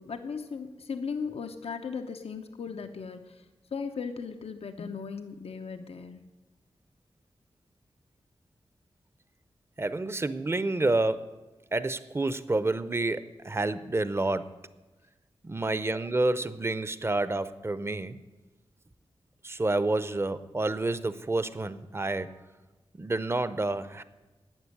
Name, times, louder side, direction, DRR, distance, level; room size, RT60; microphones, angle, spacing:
voice 1, 0.0-3.5 3.7-6.2, left 5 dB, 85° left, 0.9 m, -37 dB
voice 2, 9.8-11.4 11.7-14.5 15.4-18.2 19.4-22.3 23.0-24.0, right 2 dB, 25° right, 0.7 m, -29 dB
12.0 x 8.8 x 9.9 m
wide cardioid pair, 120°, 10 cm